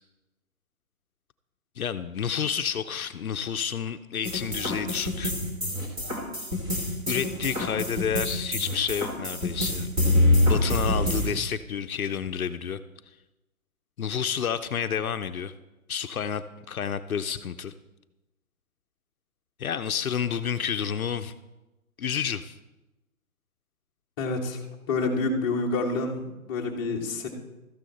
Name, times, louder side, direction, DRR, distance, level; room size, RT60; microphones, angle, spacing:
voice 1, 1.8-5.3 7.1-9.9 10.4-12.8 14.0-15.5 15.9-17.7 19.6-21.3 22.0-22.6, left 7 dB, 70° left, 10 dB, 0.7 m, -30 dB
sound 1, 4.2-11.3, left 1 dB, 10° right, 1.2 m, -26 dB
voice 2, 24.2-24.6 24.9-27.3, left 3 dB, 15° left, -1 dB, 1.2 m, -28 dB
13.5 x 9.9 x 4.2 m, 1.0 s
hypercardioid pair, 155°, 44 cm